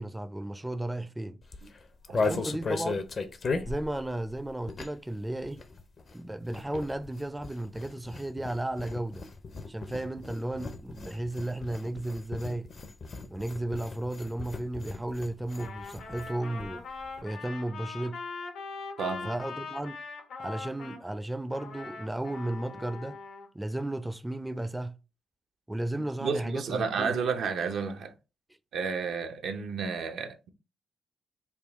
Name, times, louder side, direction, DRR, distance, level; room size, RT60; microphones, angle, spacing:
voice 1, 0.0-1.4 2.1-3.0 3.7-5.6 6.1-9.2 9.7-12.7 13.3-16.8 17.2-18.2 19.2-20.0 20.4-23.2 23.5-24.9 25.7-27.2, right 1 dB, 10° right, 0.4 m, -34 dB
sound 1, 1.4-5.1 5.4-16.3 16.6-16.7 16.9-17.2, left 4 dB, 55° left, 0.6 m, -37 dB
voice 2, 2.2-2.5 19.0-19.3 26.2-28.1 28.7-30.5, right 5 dB, 80° right, 0.5 m, -31 dB
Trumpet, 15.5-21.0 21.5-23.5, left 4 dB, 85° left, 0.9 m, -41 dB
3.6 x 2.3 x 3.5 m
supercardioid pair, 60°, 0 cm